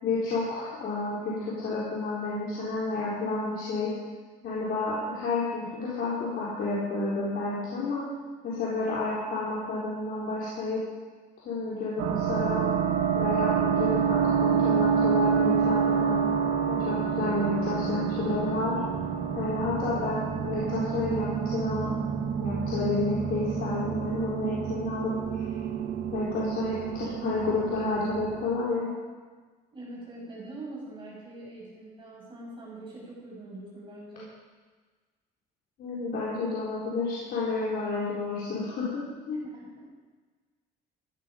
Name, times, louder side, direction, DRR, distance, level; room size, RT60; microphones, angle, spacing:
voice 1, 0.0-3.9 4.4-8.0 8.4-10.8 11.4-12.7 13.1-16.2 16.7-18.8 19.3-21.9 22.4-25.1 26.1-28.9 35.8-39.4, left 3 dB, 65° left, -7 dB, 4.2 m, -30 dB
sound 1, 12.0-28.4, right 7 dB, 80° right, 1.5 m, -28 dB
voice 2, 19.7-20.1 26.4-26.9 29.7-34.3 39.5-39.8, right 2 dB, 30° right, -5 dB, 5.9 m, -43 dB
14.5 x 13.5 x 5.2 m, 1.4 s
cardioid pair, 110°, 17 cm